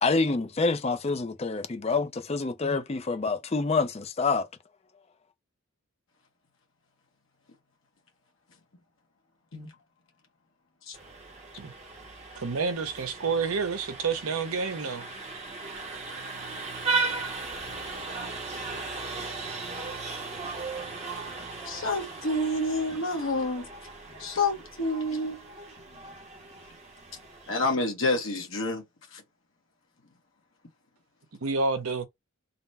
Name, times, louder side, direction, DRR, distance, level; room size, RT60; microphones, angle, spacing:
voice 1, 0.0-4.5, left 4 dB, 30° left, 0.5 m, -27 dB
Vehicle horn car horn honking, 10.9-27.8, right 3 dB, 30° right, 0.8 m, -37 dB
voice 2, 12.4-15.1 31.4-32.1, right 4 dB, 90° right, 0.7 m, -29 dB
voice 3, 21.6-23.7 24.2-25.7 27.5-28.8 29.1-29.2, left 2 dB, 70° left, 1.2 m, -28 dB
3.9 x 2.1 x 4.1 m
head